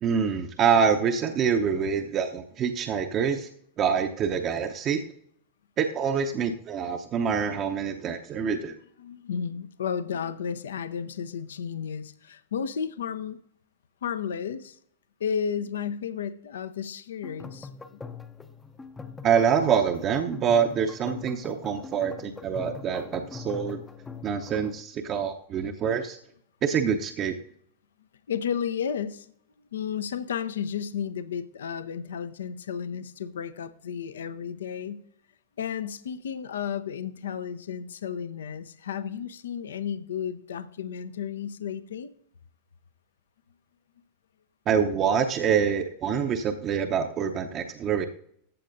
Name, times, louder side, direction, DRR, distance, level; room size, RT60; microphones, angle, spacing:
voice 1, 0.0-3.5 3.8-5.0 5.8-8.7 19.2-23.8 24.2-26.2 26.6-27.3 44.7-48.1, right 7 dB, 30° right, 4 dB, 0.7 m, -26 dB
voice 2, 9.0-13.4 14.0-14.8 15.2-18.0 28.3-29.3 29.7-35.0 35.6-42.1, left 7 dB, 65° left, 12 dB, 0.6 m, -33 dB
sound 1, 17.2-24.8, left 5 dB, 10° left, 0.6 m, -42 dB
14.5 x 8.2 x 2.6 m, 0.68 s
figure-of-eight pair, 90°, 0 cm